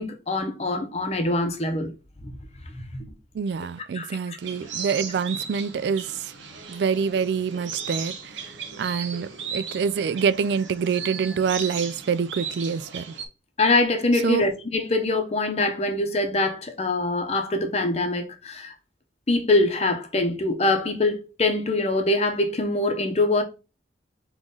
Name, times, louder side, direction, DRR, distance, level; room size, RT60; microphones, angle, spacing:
voice 1, 0.0-1.9 2.2-2.3 2.7-3.1 3.9-4.4 13.6-18.7 19.3-23.4, left 2 dB, 35° left, 0.7 m, -24 dB
voice 2, 3.3-6.3 6.7-8.5 8.8-13.1 14.2-14.5, right 6 dB, 65° right, 0.3 m, -26 dB
sound 1, 4.4-13.3, right 6 dB, 90° right, 0.8 m, -36 dB
3.8 x 3.1 x 3.8 m
head